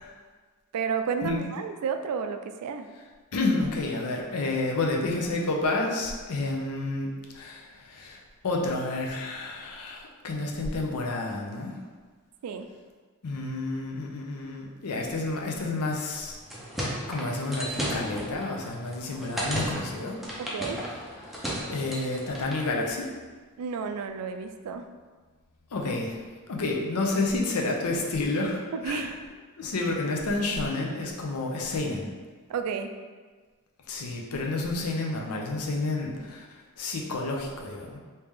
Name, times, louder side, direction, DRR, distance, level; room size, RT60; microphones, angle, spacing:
voice 1, 0.7-2.9 12.4-12.7 20.4-20.8 23.6-24.9 28.7-29.2 32.5-32.9, right 6 dB, 85° right, 7 dB, 0.3 m, -31 dB
voice 2, 3.3-11.8 13.2-16.4 17.1-20.2 21.3-23.1 25.7-26.2 26.5-29.1 29.6-32.1 33.9-38.0, left 2 dB, 80° left, 0 dB, 0.6 m, -30 dB
sound 1, 16.3-22.7, equal, ahead, 0.5 m, -34 dB
3.2 x 2.8 x 3.5 m, 1.4 s
head